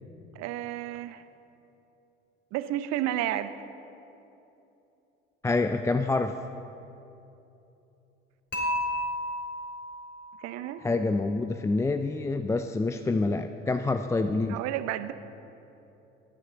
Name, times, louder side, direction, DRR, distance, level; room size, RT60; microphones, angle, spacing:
voice 1, 0.4-1.2 2.5-3.5 10.4-10.8 14.5-15.1, right 13 dB, 55° right, 12 dB, 0.7 m, -31 dB
voice 2, 5.4-6.3 10.8-14.6, left 3 dB, 10° left, 8 dB, 0.4 m, -27 dB
Dishes pots and pans / Chink clink, 8.5-10.6, left 1 dB, 35° left, 3.2 m, -32 dB
18.5 x 9.8 x 3.9 m, 2.9 s
figure-of-eight pair, 60°, 31 cm